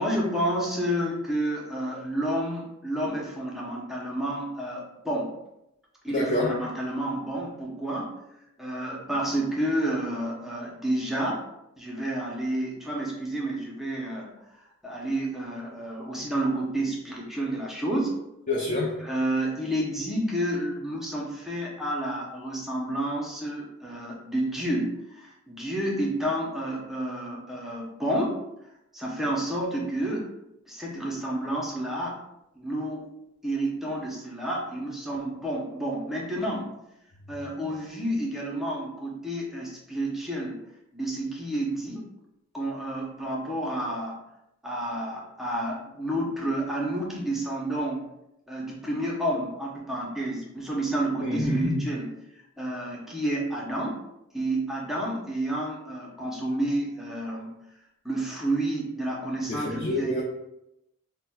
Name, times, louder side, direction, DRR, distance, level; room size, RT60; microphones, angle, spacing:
voice 1, 0.0-5.3 6.0-8.2 8.6-11.5 11.8-14.3 14.8-18.2 19.0-28.4 28.9-30.3 30.7-32.2 32.6-33.1 33.4-36.7 37.3-40.6 40.9-42.0 42.5-44.2 44.6-48.1 48.5-54.0 54.3-57.5 58.0-60.2, right 1 dB, ahead, -4 dB, 0.7 m, -30 dB
voice 2, 6.1-6.5 18.5-18.9 51.2-51.5 59.5-60.2, left 2 dB, 35° left, -3 dB, 0.5 m, -27 dB
5.8 x 2.2 x 2.2 m, 0.85 s
head